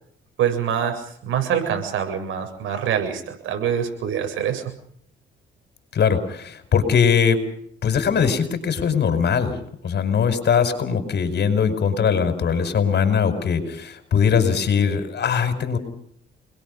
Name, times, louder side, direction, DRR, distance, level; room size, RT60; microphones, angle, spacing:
voice 1, 0.4-4.7, right 8 dB, 80° right, 6 dB, 7.7 m, -25 dB
voice 2, 5.9-7.4 7.8-9.6 9.8-15.8, left 6 dB, 60° left, 9 dB, 5.6 m, -21 dB
29.5 x 21.5 x 5.5 m, 0.68 s
cardioid pair, 90°, 20 cm